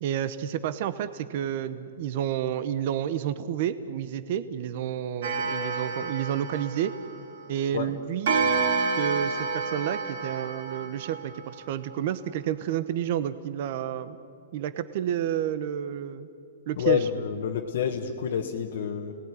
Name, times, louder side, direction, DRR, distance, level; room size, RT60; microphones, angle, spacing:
voice 1, 0.0-6.9 7.5-8.3 9.0-14.2 14.5-16.3 16.7-17.1, right 10 dB, 40° right, 13 dB, 0.9 m, -30 dB
Clock, 5.2-7.5 8.3-11.6, right 4 dB, 55° right, 4.1 m, -29 dB
voice 2, 16.8-19.2, left 8 dB, 50° left, 1 dB, 1.5 m, -28 dB
30.0 x 19.5 x 9.8 m, 2.8 s
hypercardioid pair, 170°, 0 cm